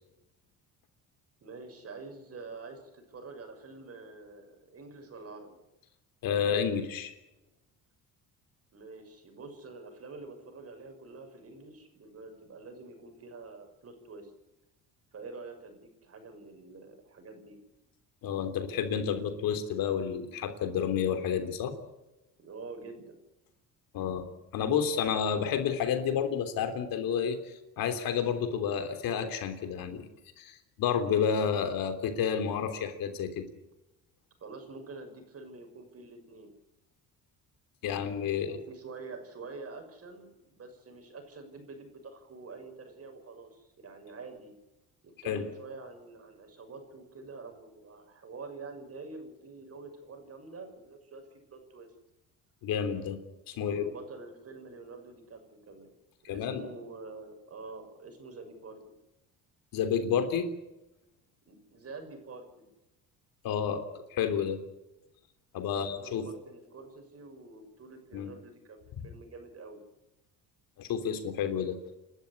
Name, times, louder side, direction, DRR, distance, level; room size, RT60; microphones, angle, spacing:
voice 1, 1.4-5.6 8.7-14.3 15.1-17.6 22.4-23.2 34.4-36.5 38.3-44.6 45.0-51.9 53.5-55.9 56.2-58.8 61.5-62.7 65.6-69.8, right 3 dB, 40° right, 5 dB, 6.4 m, -47 dB
voice 2, 6.2-7.1 18.2-21.7 23.9-24.3 24.5-30.1 30.4-33.5 37.8-38.5 45.2-45.5 52.6-53.2 53.5-53.9 56.2-56.7 59.7-60.5 63.4-64.6 65.5-66.3 68.1-68.3 69.0-69.1 70.8-71.8, left 7 dB, 70° left, 8 dB, 3.3 m, -30 dB
29.0 x 12.5 x 9.8 m, 0.96 s
cardioid pair, 105°, 35 cm